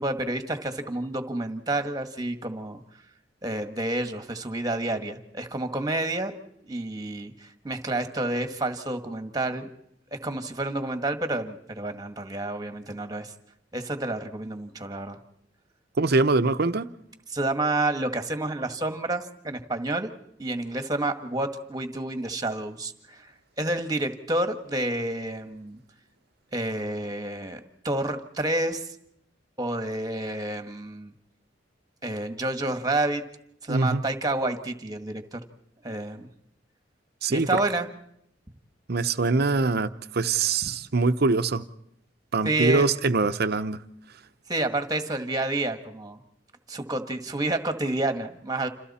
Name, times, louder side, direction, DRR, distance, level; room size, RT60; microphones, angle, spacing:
voice 1, 0.0-2.8 3.4-6.3 6.7-9.7 10.1-13.3 13.7-15.2 17.3-20.1 20.4-23.3 23.6-25.8 26.5-28.9 29.6-31.1 32.0-33.2 33.6-35.4 35.8-36.3 37.3-37.9 42.4-42.9 44.5-46.2 46.7-48.7, right 2 dB, 20° right, 1.6 m, -29 dB
voice 2, 16.0-16.9 33.7-34.0 37.2-37.5 38.9-41.7 42.3-43.8, right 3 dB, 60° right, 0.8 m, -23 dB
29.5 x 27.5 x 4.3 m
head